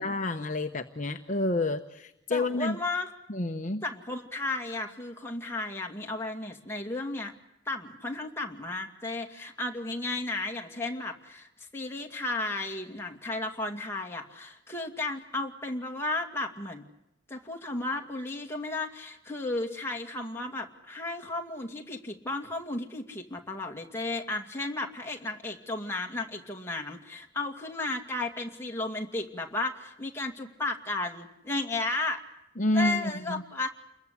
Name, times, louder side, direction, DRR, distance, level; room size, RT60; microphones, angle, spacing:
voice 1, 0.0-2.8 3.3-3.8 32.6-33.4, left 2 dB, 45° left, 5 dB, 1.0 m, -29 dB
voice 2, 2.3-3.1 3.8-7.3 7.7-16.8 17.3-32.2 32.7-33.7, left 2 dB, 15° left, 2 dB, 2.5 m, -34 dB
29.0 x 22.5 x 8.4 m, 0.87 s
head